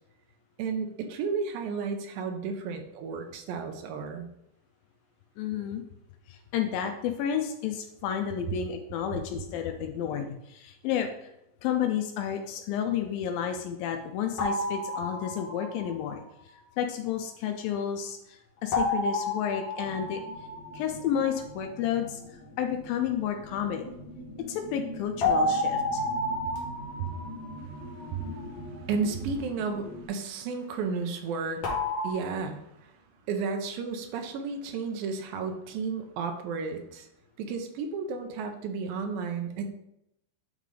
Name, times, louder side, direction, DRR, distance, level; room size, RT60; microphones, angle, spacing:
voice 1, 0.6-4.3 27.0-27.1 27.6-31.7 32.0-32.9 33.3-37.1 37.4-39.7, right 5 dB, 80° right, 5 dB, 2.5 m, -33 dB
voice 2, 5.4-5.8 6.3-11.3 11.6-16.2 16.8-20.2 20.7-22.2 22.6-23.9 24.5-26.0, left 9 dB, 85° left, 5 dB, 2.4 m, -31 dB
sound 1, 14.4-15.9 18.7-21.2 25.2-28.4 31.6-32.1, left 1 dB, 60° left, 1.6 m, -30 dB
sound 2, 19.8-30.1, equal, 30° left, 2.3 m, -44 dB
9.1 x 3.8 x 3.3 m, 0.81 s
omnidirectional pair, 4.1 m